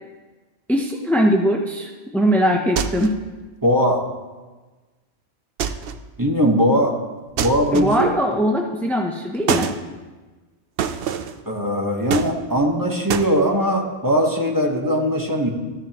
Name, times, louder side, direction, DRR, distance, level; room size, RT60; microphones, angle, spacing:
voice 1, 0.7-3.2 7.7-9.7, equal, ahead, 1 dB, 0.4 m, -20 dB
sound 1, 2.8-3.3 5.6-6.1 7.4-8.2 9.5-9.8 10.8-11.4 12.1-12.7 13.1-13.3, right 8 dB, 60° right, 0.7 m, -25 dB
voice 2, 3.6-4.1 6.2-7.0 7.4-8.1 11.5-15.5, equal, 15° right, 1 dB, 1.1 m, -20 dB
14.0 x 10.5 x 2.9 m, 1.3 s
omnidirectional pair, 1.3 m